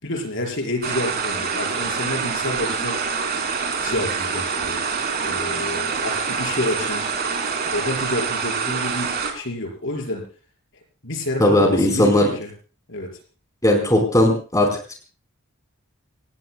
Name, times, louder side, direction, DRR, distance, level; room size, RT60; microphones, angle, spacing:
voice 1, 0.0-3.0 3.8-4.8 5.2-7.0 7.7-10.3 11.0-12.5 12.9-13.2, left 1 dB, 55° left, 2 dB, 5.4 m, -28 dB
sound 1, 0.8-9.3, right 5 dB, 45° right, 4.5 m, -26 dB
voice 2, 11.4-12.3 13.6-14.7, left 1 dB, 15° left, 2 dB, 4.5 m, -17 dB
29.0 x 18.0 x 2.3 m, 0.39 s
head